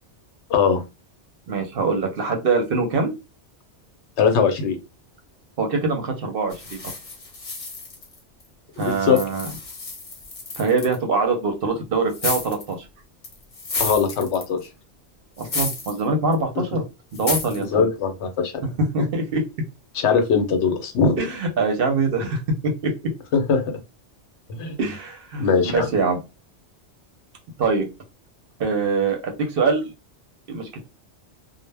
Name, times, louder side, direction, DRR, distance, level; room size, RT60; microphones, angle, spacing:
voice 1, 0.5-0.8 4.2-4.8 8.8-9.2 13.8-14.6 17.6-18.5 19.9-21.2 23.3-23.8 24.5-24.7 25.4-25.9, left 6 dB, 75° left, 7 dB, 0.9 m, -20 dB
voice 2, 1.5-3.1 5.6-6.9 8.8-9.5 10.6-12.9 15.4-16.8 17.1-17.9 18.8-19.4 21.2-22.9 24.8-26.2 27.6-27.9 28.6-29.9 30.5-30.8, right 3 dB, 60° right, 4 dB, 0.7 m, -23 dB
sound 1, 6.5-8.4 8.8-11.0 12.1-12.7 13.2-14.7 15.4-16.0 16.3-16.4 17.1-17.6, left 3 dB, 45° left, 0.8 m, -31 dB
2.1 x 2.1 x 3.2 m, 0.27 s
omnidirectional pair, 1.2 m